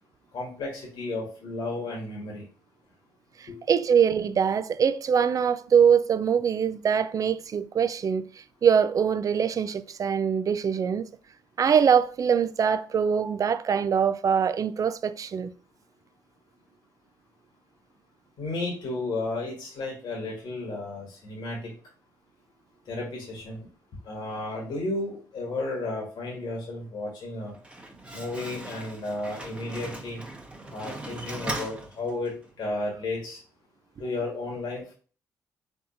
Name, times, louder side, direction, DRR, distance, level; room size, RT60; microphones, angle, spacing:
voice 1, 0.3-2.4 3.5-3.6 18.4-21.7 22.9-23.7 24.0-27.5 28.1-30.2 30.7-32.3 32.6-33.4 34.0-34.8, left 2 dB, 70° left, 1.6 m, -33 dB
voice 2, 3.4-11.1 11.6-15.5, right 7 dB, 50° right, 0.4 m, -23 dB
Slam, 27.4-32.5, right 2 dB, 15° right, 1.0 m, -39 dB
3.9 x 3.6 x 2.7 m
supercardioid pair, 55°, 8 cm